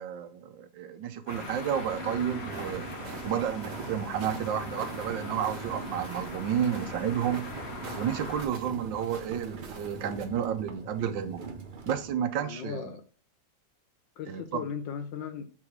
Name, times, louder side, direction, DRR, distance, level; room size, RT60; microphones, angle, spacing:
voice 1, 0.0-2.9 3.2-7.5 8.0-11.4 11.9-12.9 14.3-14.6, right 9 dB, 80° right, 10 dB, 1.5 m, -31 dB
sound 1, 1.3-8.4, left 2 dB, 35° left, 1.5 m, -40 dB
sound 2, 2.0-12.1, right 4 dB, 45° right, 0.6 m, -43 dB
sound 3, 2.5-10.3, right 4 dB, 65° right, 1.8 m, -46 dB
voice 2, 12.4-13.0 14.2-15.5, left 7 dB, 75° left, 9 dB, 1.6 m, -37 dB
7.5 x 3.7 x 4.7 m, 0.39 s
omnidirectional pair, 2.0 m